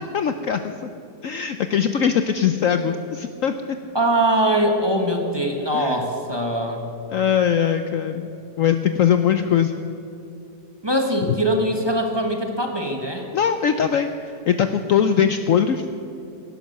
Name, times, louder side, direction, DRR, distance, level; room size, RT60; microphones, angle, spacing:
voice 1, 0.1-0.9 1.2-3.5 5.7-6.0 7.1-8.3 8.6-9.7 13.3-15.9, left 8 dB, 65° left, 9 dB, 0.9 m, -21 dB
voice 2, 3.9-6.8 10.8-13.3, right 1 dB, 15° right, 2 dB, 1.4 m, -22 dB
18.0 x 11.5 x 6.7 m, 2.6 s
omnidirectional pair, 1.8 m